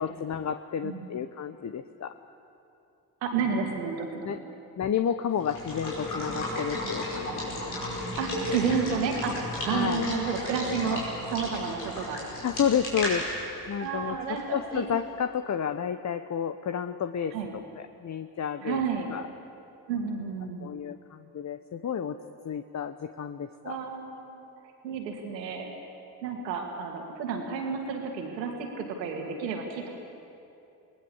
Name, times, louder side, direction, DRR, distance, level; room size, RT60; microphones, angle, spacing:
voice 1, 0.0-2.1 4.2-4.4 4.8-7.5 9.7-10.1 12.4-13.3 13.7-18.8 19.1-19.2 20.6-22.2 22.4-23.8, left 8 dB, 35° left, 10 dB, 1.1 m, -31 dB
voice 2, 0.8-1.2 3.2-4.4 8.2-12.2 13.8-14.9 17.3-17.5 18.6-19.1 19.9-20.8 23.6-24.4 24.8-25.7 26.2-29.9, right 5 dB, 85° right, 2 dB, 2.8 m, -31 dB
Water / Water tap faucet / Liquid, 5.3-15.0, left 1 dB, 85° left, 5.4 m, -34 dB
29.0 x 19.0 x 7.3 m, 2.7 s
hypercardioid pair, 45°, 49 cm